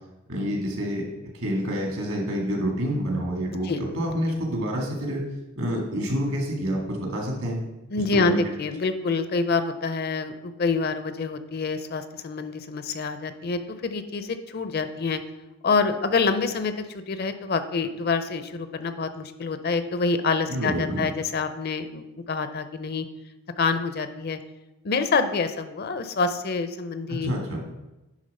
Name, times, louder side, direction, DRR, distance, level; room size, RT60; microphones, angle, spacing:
voice 1, 0.3-1.0 1.3-5.2 5.6-7.7 8.1-8.4 20.5-21.1 27.1-27.6, equal, 75° right, 0 dB, 2.0 m, -28 dB
voice 2, 7.9-15.2 15.6-23.1 23.6-24.4 24.8-27.6, left 4 dB, 45° left, 10 dB, 0.5 m, -27 dB
10.0 x 3.6 x 5.4 m, 1.0 s
head